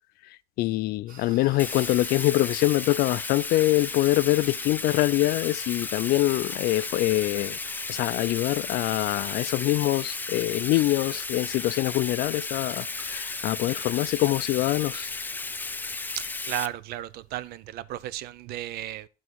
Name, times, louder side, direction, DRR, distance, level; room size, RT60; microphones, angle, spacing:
voice 1, 0.2-7.6 7.9-15.1, left 18 dB, 75° left, 0.4 m, -24 dB
sound 1, 1.1-17.7, right 4 dB, 60° right, 2.2 m, -53 dB
Bathtub (filling or washing), 1.6-16.7, left 3 dB, 10° left, 0.4 m, -34 dB
voice 2, 16.2-19.1, right 13 dB, 80° right, 0.6 m, -34 dB
12.0 x 4.0 x 6.2 m
cardioid pair, 140°, 16 cm